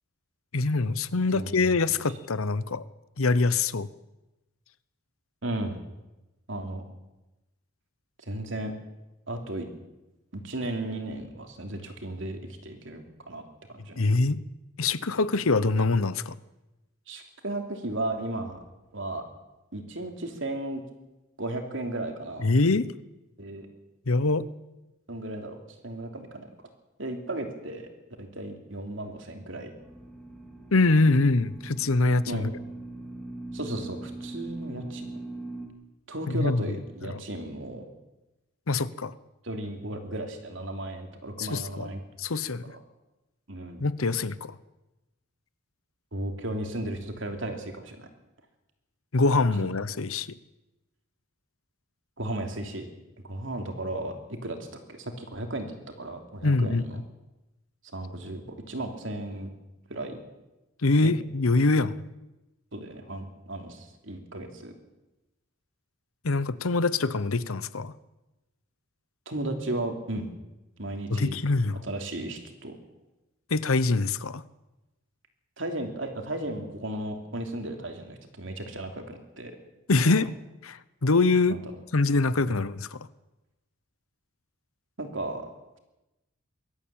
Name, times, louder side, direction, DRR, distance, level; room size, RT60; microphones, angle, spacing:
voice 1, 0.5-2.8 3.2-3.9 14.0-14.4 14.8-16.4 22.4-22.9 24.1-24.5 30.7-32.5 36.3-36.6 37.1-37.2 38.7-39.1 41.4-41.9 42.2-42.6 43.8-44.6 49.1-50.3 56.4-56.8 60.8-61.9 66.2-67.9 71.1-71.8 73.5-74.4 79.9-80.3 80.6-81.6 81.9-83.1, left 3 dB, 80° left, 16 dB, 0.9 m, -24 dB
voice 2, 1.3-1.7 5.4-5.8 6.5-6.8 8.2-8.7 9.3-9.7 10.3-13.4 13.7-14.1 17.1-18.6 18.9-19.2 19.7-20.8 21.4-22.5 23.4-23.7 25.1-25.6 25.8-26.5 27.0-27.9 28.2-29.7 32.3-32.5 33.5-35.1 36.1-37.9 39.4-42.0 42.6-42.8 43.5-43.9 46.1-48.1 52.2-52.9 53.2-55.7 56.0-57.0 57.9-59.5 59.9-60.2 61.0-61.1 62.7-64.7 69.3-70.3 70.8-71.3 71.8-72.8 75.6-79.6 80.0-80.2 81.5-81.7 82.5-82.6 85.0-85.5, right 1 dB, 60° right, 4 dB, 3.1 m, -35 dB
sound 1, 29.8-35.7, right 2 dB, ahead, 2.8 m, -40 dB
22.0 x 13.5 x 8.8 m, 1.0 s
head